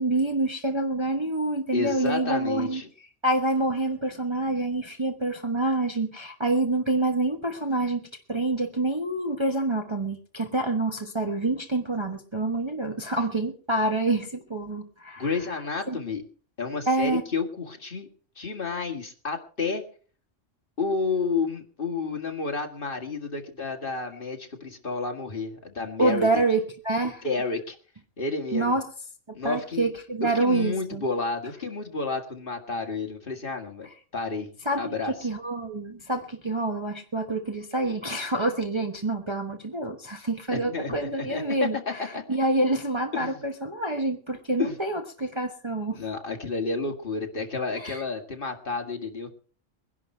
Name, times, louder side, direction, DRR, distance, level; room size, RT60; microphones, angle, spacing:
voice 1, 0.0-2.8 3.2-15.3 15.9-16.0 16.9-17.2 26.0-27.2 28.5-28.8 29.4-31.0 34.6-34.9 35.2-46.0 47.8-48.0, right 2 dB, 25° right, 3 dB, 1.2 m, -27 dB
voice 2, 1.7-2.9 15.2-16.2 16.6-18.1 18.4-19.8 20.8-26.3 27.0-27.8 28.2-28.8 29.3-29.9 30.2-35.3 40.5-42.2 43.1-43.4 44.6-44.7 45.9-49.3, left 4 dB, 45° left, 3 dB, 2.1 m, -31 dB
21.5 x 11.0 x 4.5 m, 0.41 s
omnidirectional pair, 1.3 m